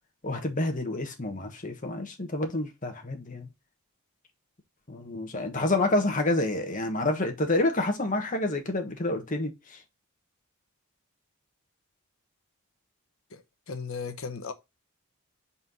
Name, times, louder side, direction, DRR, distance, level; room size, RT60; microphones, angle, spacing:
voice 1, 0.2-3.5 4.9-9.8, left 2 dB, 35° left, 1.3 m, -28 dB
voice 2, 13.3-14.5, left 5 dB, 65° left, 1.0 m, -36 dB
4.6 x 4.2 x 5.3 m
head